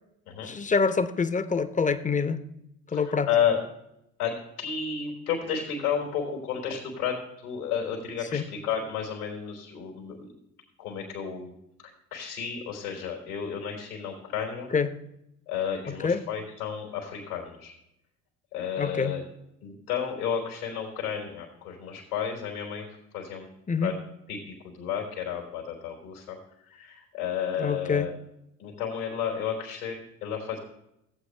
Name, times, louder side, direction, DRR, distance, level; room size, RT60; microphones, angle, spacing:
voice 1, 0.4-2.4 2.9-3.3 8.3-8.5 14.7-14.9 15.9-16.2 18.8-19.2 23.7-23.9 27.6-28.1, left 5 dB, 20° left, 13 dB, 0.8 m, -26 dB
voice 2, 2.9-3.6 4.2-10.3 10.8-11.5 11.8-14.7 15.5-17.7 18.5-19.2 19.6-23.5 23.8-23.9 24.3-26.4 26.6-28.1 28.6-30.6, left 7 dB, 85° left, 0 dB, 3.7 m, -32 dB
16.0 x 8.4 x 3.3 m, 0.83 s
figure-of-eight pair, 55°, 42 cm